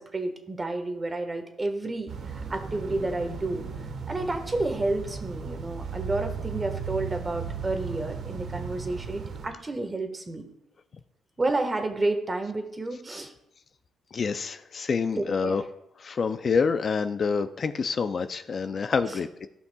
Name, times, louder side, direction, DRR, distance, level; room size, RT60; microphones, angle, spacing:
voice 1, 0.0-3.6 4.1-10.4 11.4-13.3 15.2-15.6, right 2 dB, 25° right, 5 dB, 1.4 m, -30 dB
sound 1, 2.1-9.5, right 6 dB, 65° right, 1.2 m, -36 dB
voice 2, 14.1-15.6 16.0-19.5, left 5 dB, 45° left, 10 dB, 0.4 m, -27 dB
15.5 x 5.6 x 2.3 m, 0.82 s
cardioid pair, 90°, 0 cm